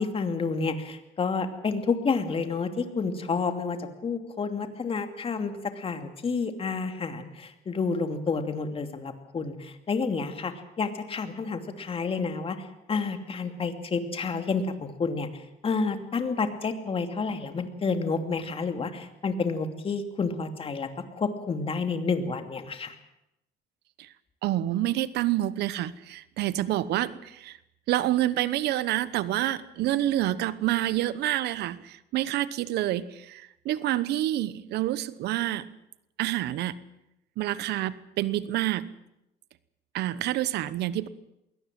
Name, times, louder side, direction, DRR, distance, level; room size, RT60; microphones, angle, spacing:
voice 1, 0.0-20.9 21.2-23.0, left 4 dB, 35° left, 7 dB, 2.6 m, -30 dB
voice 2, 24.4-27.6 27.9-35.7 36.2-36.8 37.4-38.9 39.9-41.1, right 14 dB, 75° right, 17 dB, 1.0 m, -28 dB
22.0 x 18.0 x 7.7 m, 0.87 s
cardioid pair, 110°, 17 cm